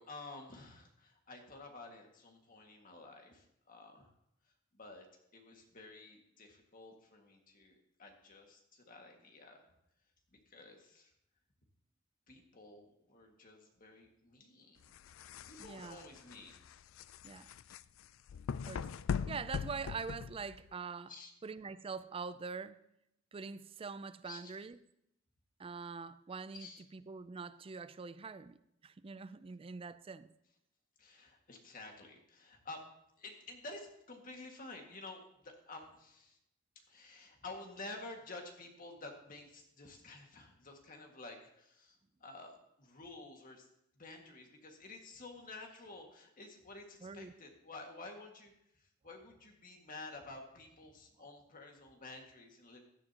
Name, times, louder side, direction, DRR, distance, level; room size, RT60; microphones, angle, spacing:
voice 1, 0.0-4.1 4.7-5.1 5.3-9.7 10.3-11.1 12.3-14.9 15.5-16.6 17.7-17.8 21.1-21.3 24.2-24.4 26.5-26.8 31.0-32.8 33.2-36.4 36.9-43.7 44.0-52.8, left 2 dB, 45° left, 1.9 m, -51 dB
sound 1, 14.8-20.7, left 6 dB, 80° left, 0.4 m, -41 dB
voice 2, 15.6-16.0 17.2-17.5 18.7-18.9 19.3-21.1 21.4-22.8 23.3-24.8 25.6-30.3 47.0-47.3, right 5 dB, 30° right, 0.4 m, -44 dB
16.0 x 11.5 x 2.9 m
head